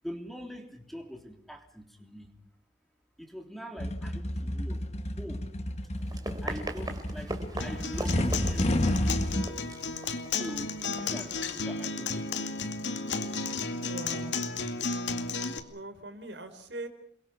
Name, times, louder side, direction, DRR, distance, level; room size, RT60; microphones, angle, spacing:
voice 1, 0.0-2.3 3.2-4.9 5.2-5.5 6.4-8.8 10.3-12.6, equal, ahead, 3 dB, 3.2 m, -43 dB
sound 1, 3.8-9.5, left 1 dB, 35° left, 1.4 m, -30 dB
Run, 6.0-11.4, right 2 dB, 20° right, 3.2 m, -41 dB
Acoustic guitar, 7.6-15.6, left 4 dB, 85° left, 2.4 m, -33 dB
voice 2, 13.8-14.3 15.6-16.9, right 1 dB, 75° right, 8 dB, 4.4 m, -41 dB
29.0 x 22.5 x 5.9 m, 0.63 s
head